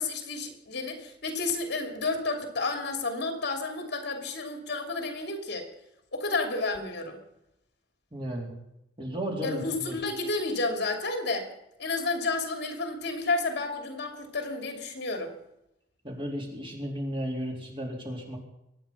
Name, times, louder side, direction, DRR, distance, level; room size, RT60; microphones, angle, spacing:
voice 1, 0.0-5.7 6.1-7.2 9.4-11.5 11.8-15.3, left 3 dB, 60° left, 4 dB, 2.8 m, -31 dB
voice 2, 8.1-8.5 9.0-10.0 16.0-18.4, equal, 30° right, -1 dB, 4.0 m, -34 dB
23.5 x 9.2 x 5.7 m, 0.84 s
head